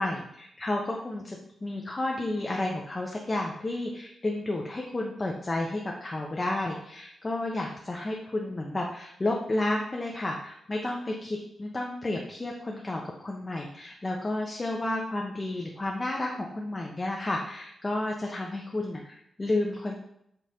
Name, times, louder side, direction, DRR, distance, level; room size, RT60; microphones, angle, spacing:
voice 1, 0.0-20.0, left 2 dB, 25° left, 0 dB, 0.5 m, -31 dB
5.1 x 2.4 x 4.1 m, 0.76 s
wide cardioid pair, 130°, 0 cm